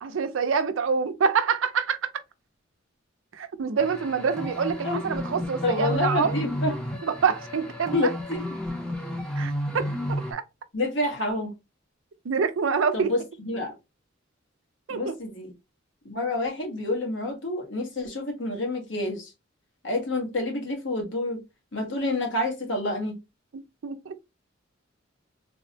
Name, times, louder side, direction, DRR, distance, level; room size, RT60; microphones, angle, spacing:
voice 1, 0.0-2.1 3.3-6.4 7.0-8.1 9.4-10.4 12.2-13.1 14.9-15.2 23.5-24.1, right 5 dB, 90° right, 0.5 m, -26 dB
sound 1, 3.8-10.3, equal, 5° left, 0.6 m, -32 dB
voice 2, 5.6-6.8 7.9-8.5 10.7-11.5 12.9-13.7 14.9-15.5 16.0-19.3 19.8-21.4 21.7-23.2, left 2 dB, 70° left, 1.1 m, -28 dB
3.5 x 2.1 x 2.6 m
head